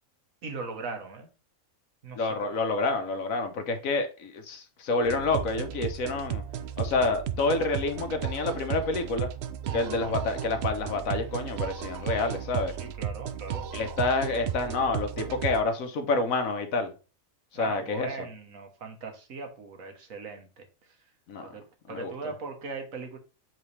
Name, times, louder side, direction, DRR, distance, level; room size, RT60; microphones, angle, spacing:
voice 1, 0.4-1.3 2.0-2.5 9.6-10.2 12.8-13.7 17.5-20.6 21.4-23.2, right 4 dB, 85° right, 1.6 m, -39 dB
voice 2, 2.2-6.4 6.8-9.3 9.7-12.7 13.7-16.9 17.5-18.1 21.3-21.5 21.9-22.3, left 3 dB, 85° left, 1.4 m, -28 dB
sound 1, 5.0-15.6, right 8 dB, 65° right, 0.7 m, -34 dB
7.7 x 4.0 x 3.2 m
omnidirectional pair, 1.4 m